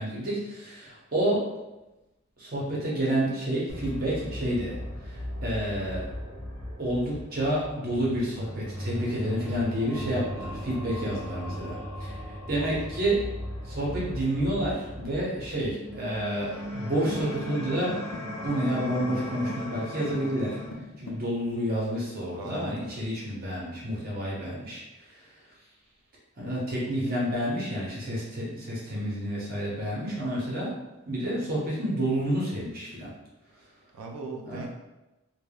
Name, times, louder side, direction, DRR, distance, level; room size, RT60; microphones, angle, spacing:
voice 1, 0.0-1.5 2.4-4.8 5.0-6.1 6.8-12.1 12.5-13.3 13.7-18.0 18.4-20.6 21.0-25.1 26.4-30.7 31.1-33.1 34.4-34.7, right 1 dB, 45° right, -5 dB, 0.8 m, -29 dB
sound 1, 3.7-20.7, equal, 65° left, 0.9 m, -38 dB
voice 2, 12.5-12.9 22.4-22.9 33.9-34.7, right 3 dB, 85° right, 1 dB, 0.4 m, -39 dB
sound 2, 17.1-21.3, left 2 dB, 80° left, 0.5 m, -42 dB
3.3 x 2.1 x 2.2 m, 1.0 s
head